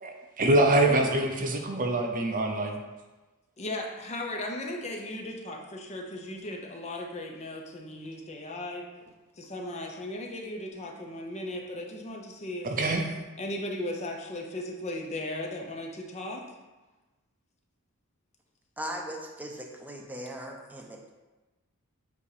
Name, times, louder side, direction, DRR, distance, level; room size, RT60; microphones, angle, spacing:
voice 1, 0.0-2.8 12.6-13.0, right 1 dB, 40° right, 2 dB, 0.7 m, -25 dB
voice 2, 3.6-8.8 9.4-12.7 13.4-16.4, left 1 dB, 30° left, 1 dB, 0.7 m, -36 dB
voice 3, 18.8-21.1, equal, 10° right, 1 dB, 0.7 m, -39 dB
8.3 x 2.9 x 4.9 m, 1.2 s
head